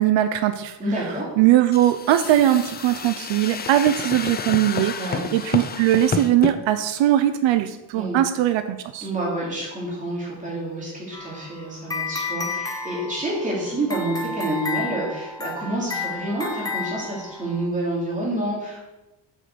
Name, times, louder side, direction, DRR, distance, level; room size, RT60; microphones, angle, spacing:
voice 1, 0.0-0.8 1.4-4.9 5.3-9.1, right 13 dB, 80° right, 11 dB, 0.7 m, -20 dB
voice 2, 0.8-1.3 5.0-5.3 7.9-8.2 9.0-18.8, right 1 dB, 15° right, -5 dB, 3.2 m, -28 dB
sound 1, 1.7-6.6, left 6 dB, 25° left, 0.4 m, -30 dB
sound 2, 11.1-17.6, left 4 dB, 10° left, 1.0 m, -32 dB
7.7 x 6.4 x 6.8 m, 0.99 s
cardioid pair, 175°, 45 cm